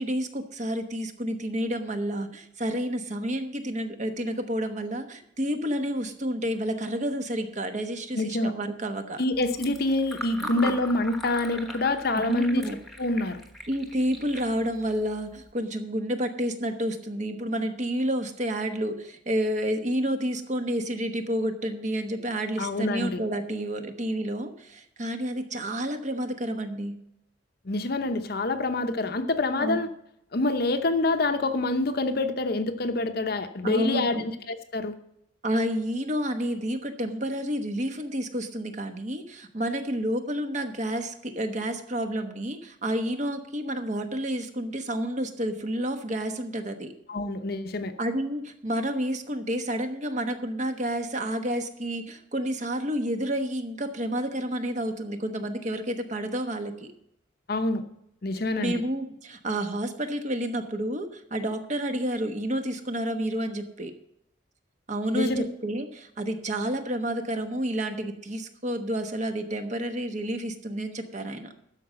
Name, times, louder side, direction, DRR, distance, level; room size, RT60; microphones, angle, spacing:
voice 1, 0.0-9.2 10.4-10.7 12.1-12.8 13.7-26.9 29.6-29.8 33.6-34.2 35.4-46.9 48.0-56.9 58.6-63.9 64.9-71.5, right 1 dB, 40° right, 7 dB, 1.1 m, -30 dB
voice 2, 8.1-8.5 9.2-12.6 13.0-13.4 22.6-23.2 27.6-29.9 30.3-34.9 47.1-47.9 57.5-57.8 58.2-58.8 65.1-65.5, left 2 dB, 50° left, 8 dB, 0.8 m, -26 dB
Fill (with liquid), 9.3-15.5, equal, ahead, 1.2 m, -40 dB
12.5 x 5.1 x 7.6 m, 0.78 s
head